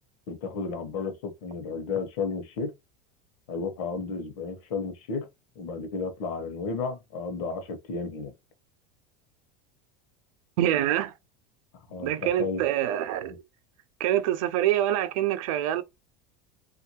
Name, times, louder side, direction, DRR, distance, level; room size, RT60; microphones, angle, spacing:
voice 1, 0.3-2.7 3.5-5.3 5.5-8.3 11.9-12.6 13.2-13.4, left 4 dB, 60° left, 1.0 m, -33 dB
voice 2, 10.6-11.1 12.0-13.4 14.0-15.8, right 12 dB, 70° right, 0.6 m, -25 dB
3.4 x 2.5 x 3.0 m
cardioid pair, 170°, 18 cm